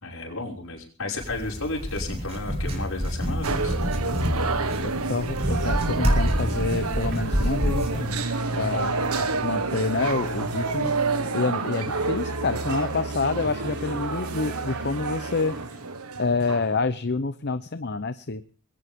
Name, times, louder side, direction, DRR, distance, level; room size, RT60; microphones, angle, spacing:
voice 1, 0.0-3.7 8.9-9.4, left 2 dB, 65° left, -1 dB, 5.9 m, -33 dB
sound 1, 1.2-8.1, equal, 30° right, 4.9 m, -27 dB
sound 2, 3.4-16.8, right 3 dB, 80° right, 1.6 m, -29 dB
voice 2, 4.8-8.3 8.5-8.9 9.4-10.9 11.3-15.5 16.2-18.4, left 3 dB, 50° left, 12 dB, 0.7 m, -27 dB
sound 3, 5.4-15.8, right 3 dB, 50° right, 4.2 m, -44 dB
21.5 x 18.0 x 3.7 m, 0.42 s
head